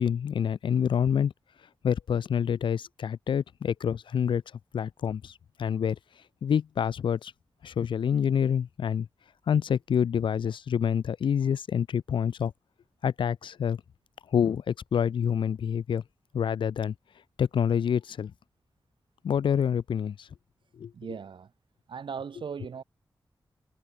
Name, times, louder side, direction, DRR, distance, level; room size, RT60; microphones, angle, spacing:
voice 1, 0.0-1.3 1.8-4.4 4.7-6.0 6.4-7.3 7.6-9.1 9.5-12.5 13.0-13.8 14.3-16.0 16.3-16.9 17.4-18.3 19.2-20.3 20.8-20.9, left 8 dB, 90° left, 0.4 m, -27 dB
voice 2, 20.9-21.5 21.9-22.8, right 6 dB, 85° right, 1.5 m, -38 dB
wide cardioid pair, 100°, 8 cm